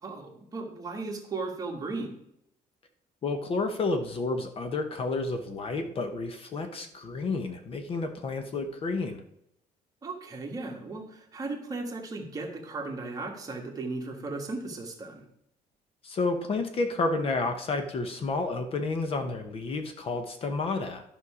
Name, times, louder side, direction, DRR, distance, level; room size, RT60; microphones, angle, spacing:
voice 1, 0.0-2.2 10.0-15.2, right 3 dB, 25° right, 1 dB, 1.6 m, -36 dB
voice 2, 3.2-9.2 16.0-21.0, left 3 dB, 40° left, 7 dB, 0.9 m, -30 dB
11.0 x 5.5 x 4.9 m, 0.76 s
cardioid pair, 155°, 15 cm